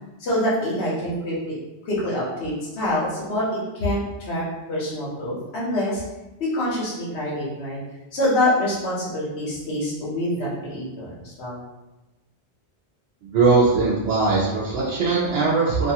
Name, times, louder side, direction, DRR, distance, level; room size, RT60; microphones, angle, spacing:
voice 1, 0.2-1.6 1.9-4.0 4.3-6.0 6.4-7.8 8.1-11.6, left 1 dB, 85° left, -7 dB, 1.1 m, -25 dB
voice 2, 13.3-15.9, right 4 dB, 75° right, -6 dB, 0.9 m, -20 dB
2.5 x 2.4 x 2.8 m, 1.0 s
omnidirectional pair, 1.0 m